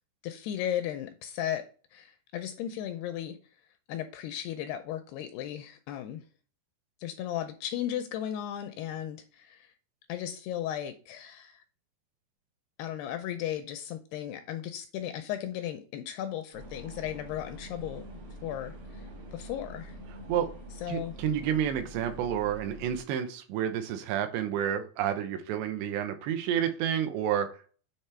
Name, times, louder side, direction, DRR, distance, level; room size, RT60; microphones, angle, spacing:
voice 1, 0.2-1.7 1.9-3.4 3.9-6.2 7.0-9.6 10.1-11.6 12.8-18.0 18.4-18.7 19.3-19.9 20.8-21.2, left 11 dB, 85° left, 8 dB, 2.4 m, -35 dB
sound 1, 16.5-23.0, right 1 dB, 60° right, 1.4 m, -45 dB
voice 2, 20.9-27.5, right 9 dB, 85° right, 7 dB, 3.0 m, -30 dB
7.5 x 3.4 x 4.3 m, 0.39 s
omnidirectional pair, 5.0 m